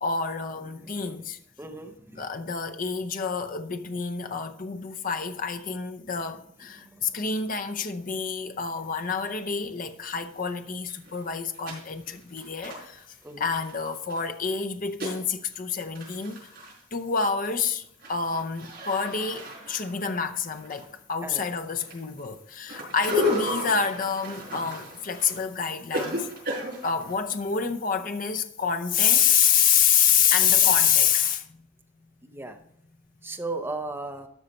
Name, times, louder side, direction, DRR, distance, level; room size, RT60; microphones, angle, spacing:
voice 1, 0.0-1.4 2.2-16.5 16.9-26.3 26.8-31.6, left 7 dB, 40° left, 0.6 m, -27 dB
voice 2, 0.8-1.1 1.6-2.3 6.8-7.2 13.2-13.5 21.2-21.5 32.2-32.6 33.2-34.3, right 2 dB, 10° right, 0.8 m, -36 dB
sound 1, 7.8-7.9 8.4-8.5 9.8-9.9 10.2-10.3 10.7-14.2 14.5-15.3 15.5-15.6 15.8-16.8 17.2-17.5 17.8-21.1 21.4-27.1, left 1 dB, 50° right, 4.6 m, -34 dB
13.0 x 5.7 x 4.2 m
head